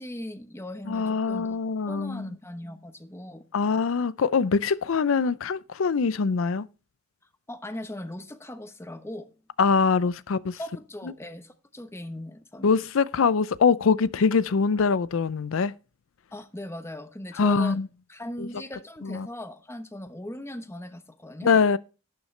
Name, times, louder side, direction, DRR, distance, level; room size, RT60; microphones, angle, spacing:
voice 1, 0.0-1.5 1.9-3.4 7.5-9.3 10.5-12.7 16.3-17.8 18.1-21.5, left 1 dB, 15° left, 1.0 m, -39 dB
voice 2, 0.9-2.3 3.5-6.7 9.6-10.6 12.6-15.7 17.4-17.9 18.4-18.5 19.0-19.3 21.4-21.8, left 5 dB, 80° left, 0.5 m, -23 dB
11.5 x 9.3 x 3.2 m
head